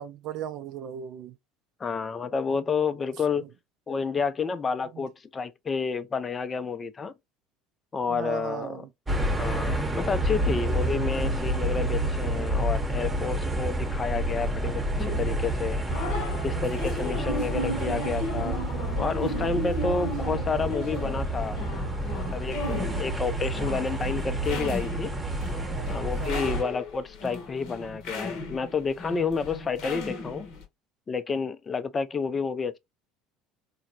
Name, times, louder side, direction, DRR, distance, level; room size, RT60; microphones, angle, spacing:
voice 1, 0.0-1.4 4.9-5.1 8.1-8.9 16.3-17.3 25.6-25.9 26.2-26.6, right 9 dB, 55° right, 0.4 m, -38 dB
voice 2, 1.8-3.5 3.9-7.1 7.9-8.8 9.4-16.0 16.4-18.6 19.0-21.6 22.2-25.1 25.9-30.5 31.1-32.8, left 5 dB, 30° left, 0.4 m, -30 dB
sound 1, 9.1-26.6, right 1 dB, 15° right, 0.8 m, -29 dB
sound 2, 15.0-30.6, left 1 dB, 60° left, 0.8 m, -36 dB
3.9 x 2.1 x 2.7 m
figure-of-eight pair, 65°, 0 cm